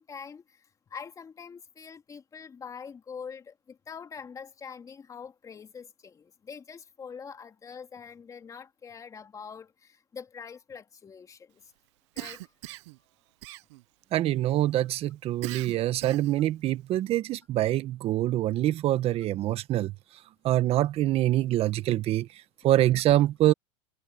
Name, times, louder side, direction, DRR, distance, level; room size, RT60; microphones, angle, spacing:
voice 1, 0.0-11.7 12.1-12.6, left 6 dB, 20° left, 3.4 m, -44 dB
Cough, 12.2-13.0 13.4-14.0 15.4-16.4, right 20 dB, 70° right, 0.9 m, -40 dB
voice 2, 14.1-19.9 20.4-22.3 22.6-23.5, right 14 dB, 40° right, 1.3 m, -25 dB
supercardioid pair, 125°, 15 cm